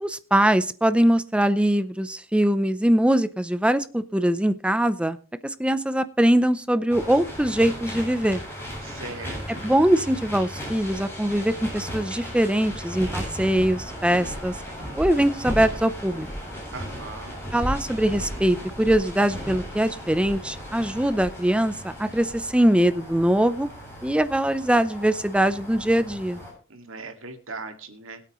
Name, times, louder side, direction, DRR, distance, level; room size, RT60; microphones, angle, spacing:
voice 1, 0.0-5.2 5.4-8.4 9.5-14.6 14.9-16.3 17.5-23.7 24.0-26.4, right 1 dB, 5° right, 12 dB, 0.6 m, -22 dB
sound 1, 6.9-26.5, equal, 10° left, 7.9 m, -36 dB
voice 2, 8.8-9.7 16.7-17.4 26.7-28.2, right 3 dB, 75° right, 5 dB, 2.2 m, -39 dB
21.5 x 8.5 x 3.1 m, 0.38 s
head